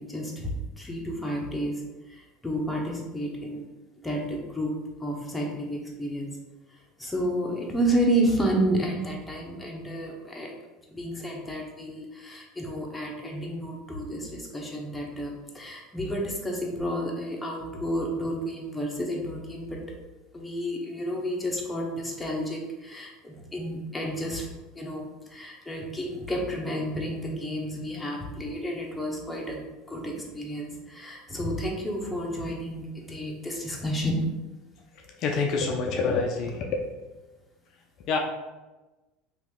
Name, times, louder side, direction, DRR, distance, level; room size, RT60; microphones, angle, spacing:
voice 1, 0.0-1.7 2.1-3.7 4.0-4.7 5.0-6.3 7.0-10.5 10.9-19.8 20.3-24.5 24.7-29.6 29.9-34.1, equal, 10° left, -1 dB, 0.9 m, -31 dB
voice 2, 35.2-36.8 38.1-38.2, left 4 dB, 55° left, 2 dB, 0.4 m, -26 dB
2.9 x 2.7 x 3.6 m, 1.1 s
hypercardioid pair, 80°, 0 cm